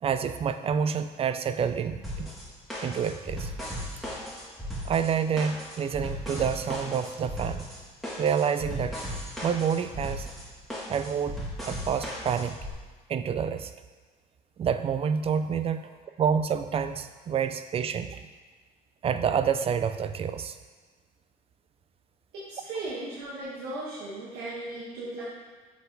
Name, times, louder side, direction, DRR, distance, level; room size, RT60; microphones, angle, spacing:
voice 1, 0.0-2.3 2.8-3.5 4.8-7.7 8.2-9.0 9.4-10.3 10.9-12.6 13.1-13.7 14.6-15.9 16.2-18.3 19.0-20.6, right 7 dB, 35° right, 10 dB, 0.4 m, -28 dB
sound 1, 2.0-12.7, equal, ahead, 1.8 m, -37 dB
voice 2, 22.5-25.2, right 2 dB, 80° right, -7 dB, 1.6 m, -36 dB
7.1 x 4.4 x 4.0 m, 1.4 s
cardioid pair, 110°, 17 cm